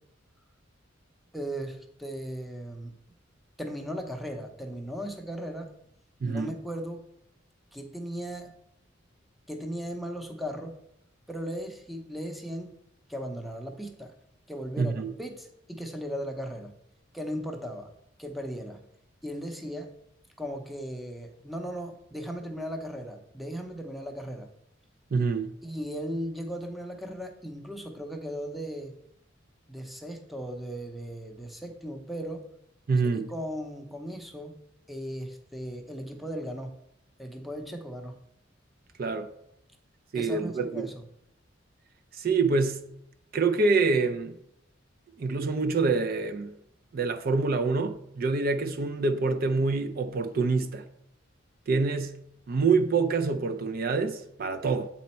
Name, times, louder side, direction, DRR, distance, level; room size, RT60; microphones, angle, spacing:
voice 1, 1.3-2.9 3.6-5.7 6.2-7.0 7.7-8.5 9.5-10.8 11.3-12.7 13.1-14.1 14.5-16.7 17.1-17.9 18.2-18.8 19.2-19.9 20.4-24.5 25.6-28.9 29.7-32.4 33.0-34.6 34.9-36.8 37.2-38.2 40.1-41.0, equal, ahead, 0.7 m, -37 dB
voice 2, 6.2-6.5 14.8-15.1 25.1-25.5 32.9-33.3 39.0-39.3 40.1-40.8 42.1-42.8 43.3-44.3 45.2-46.5 46.9-50.8 51.7-52.1 52.5-54.9, right 4 dB, 50° right, 0.4 m, -26 dB
7.9 x 4.2 x 4.3 m
head